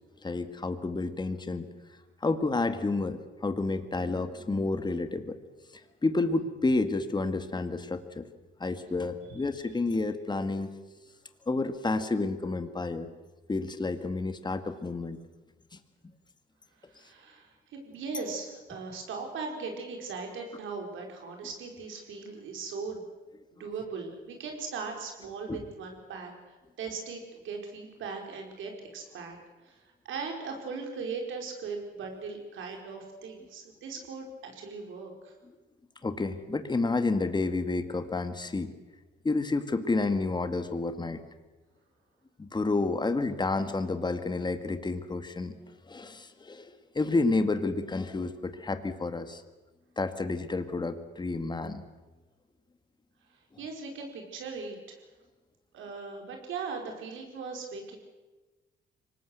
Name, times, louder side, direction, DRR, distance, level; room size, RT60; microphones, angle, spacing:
voice 1, 0.2-1.7 2.2-5.4 6.0-8.3 8.6-10.7 11.5-13.1 13.5-15.2 25.5-25.6 36.0-38.7 39.2-41.2 42.4-45.5 45.9-46.7 47.0-49.4 50.0-51.8, left 3 dB, 20° left, 9 dB, 1.8 m, -30 dB
voice 2, 16.9-23.1 23.5-29.4 29.6-35.3 53.6-55.0 55.7-58.0, right 4 dB, 80° right, 2 dB, 5.0 m, -39 dB
24.5 x 19.5 x 8.1 m, 1.2 s
cardioid pair, 90°, 20 cm